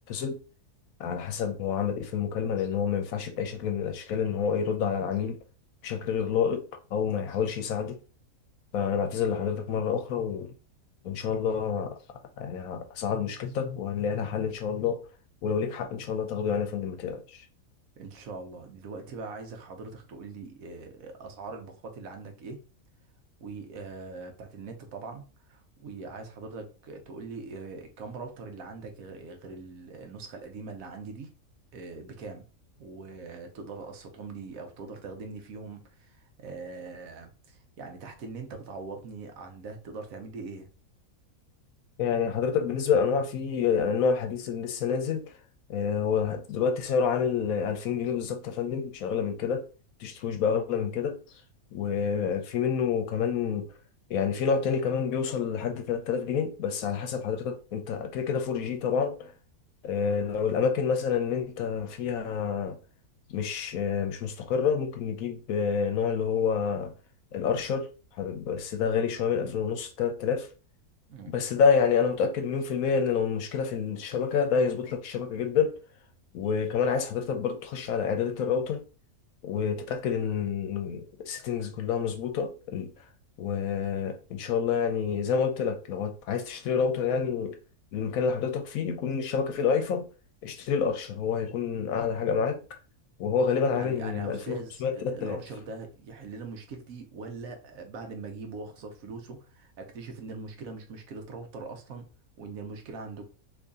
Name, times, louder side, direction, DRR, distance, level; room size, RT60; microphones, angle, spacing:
voice 1, 0.1-0.4 1.0-5.4 5.8-6.6 6.9-8.0 8.7-10.5 11.0-12.0 12.4-15.0 15.4-17.4 42.0-45.2 45.7-49.6 50.0-51.2 51.7-53.7 54.1-59.3 59.8-62.8 63.3-66.9 67.3-67.9 68.1-70.5 71.3-75.7 76.3-78.8 79.4-82.9 83.4-87.6 87.9-90.1 90.4-92.6 93.2-95.4, left 6 dB, 75° left, 1.0 m, -28 dB
voice 2, 18.0-22.6 23.4-31.3 31.7-32.5 32.8-40.7 71.1-71.3 93.7-102.1 102.4-103.3, right 4 dB, 70° right, 1.1 m, -42 dB
3.0 x 2.7 x 3.5 m
omnidirectional pair, 1.5 m